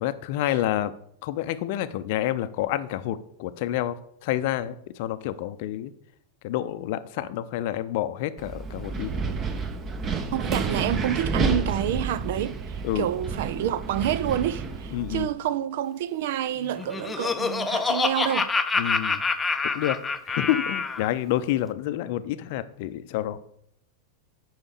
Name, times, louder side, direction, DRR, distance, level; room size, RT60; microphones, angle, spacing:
voice 1, 0.0-5.9 6.4-9.1 12.8-13.1 14.9-15.3 18.7-19.2 19.6-23.4, left 13 dB, 50° left, 0.6 m, -29 dB
Wind, 8.4-15.2, right 4 dB, 25° right, 1.1 m, -30 dB
voice 2, 10.3-18.5, right 10 dB, 55° right, 0.5 m, -28 dB
Laughter, 16.6-21.1, left 4 dB, 10° left, 0.7 m, -27 dB
8.8 x 5.6 x 6.8 m
figure-of-eight pair, 90°, 0 cm